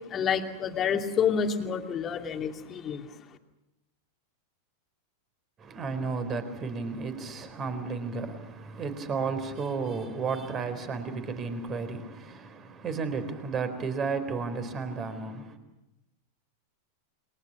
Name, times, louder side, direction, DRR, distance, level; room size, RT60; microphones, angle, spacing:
voice 1, 0.1-3.1, left 7 dB, 25° left, 2.6 m, -28 dB
voice 2, 5.6-15.6, right 4 dB, 25° right, 4.3 m, -33 dB
29.5 x 23.5 x 6.1 m
figure-of-eight pair, 90°, 0 cm